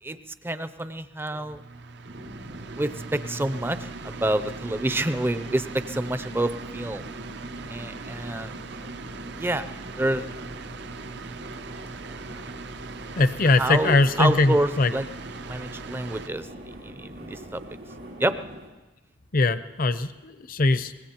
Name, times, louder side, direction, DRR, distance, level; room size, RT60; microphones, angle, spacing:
voice 1, 0.4-1.6 2.8-7.0 7.7-8.6 9.4-9.7 10.0-10.2 13.6-15.0 15.4-16.5 16.8-17.6 18.2-18.4, right 1 dB, 10° right, 12 dB, 0.5 m, -27 dB
sound 1, 1.4-16.3, right 4 dB, 60° right, 0.5 m, -41 dB
sound 2, 2.0-18.7, equal, 80° right, 4.3 m, -42 dB
voice 2, 13.2-14.9 19.3-20.9, left 2 dB, 50° left, 12 dB, 0.6 m, -21 dB
24.0 x 20.0 x 3.0 m, 1.1 s
head